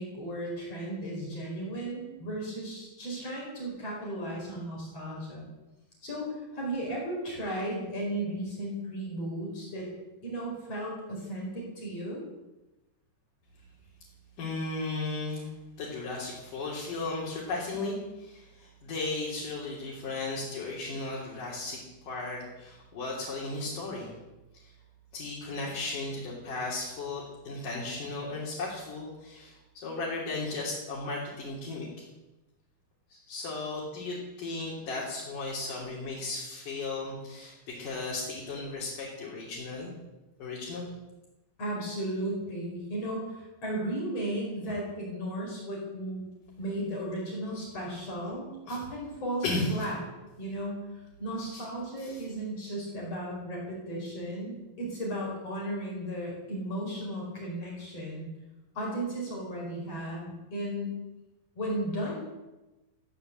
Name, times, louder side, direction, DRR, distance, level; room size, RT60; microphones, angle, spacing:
voice 1, 0.0-5.5 6.0-9.9 10.2-12.2 41.6-46.2 46.6-50.0 50.4-58.3 58.8-60.9 61.6-62.2, right 1 dB, 45° left, -3 dB, 5.7 m, -35 dB
voice 2, 14.4-15.5 15.8-24.1 24.6-24.7 25.1-32.0 33.1-39.9 40.4-40.9 48.7-48.8 49.4-49.9 51.5-51.6 52.0-52.2, left 3 dB, 75° left, -5 dB, 4.8 m, -35 dB
15.0 x 11.0 x 7.7 m, 1.1 s
omnidirectional pair, 3.8 m